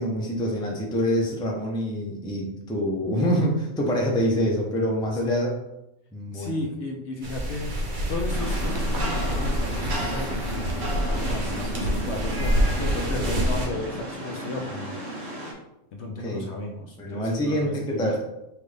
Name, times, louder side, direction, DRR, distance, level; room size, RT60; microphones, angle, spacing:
voice 1, 0.0-5.6 6.1-6.6 16.2-16.5 17.0-18.3, equal, 5° left, -2 dB, 0.4 m, -26 dB
voice 2, 6.3-7.8 8.1-14.9 15.9-18.1, left 2 dB, 65° left, 1 dB, 0.8 m, -34 dB
sound 1, 7.2-13.7, equal, 40° right, 0.8 m, -27 dB
Rain, 8.3-15.5, equal, 65° right, 1.4 m, -34 dB
5.8 x 2.4 x 3.3 m, 0.89 s
omnidirectional pair, 1.5 m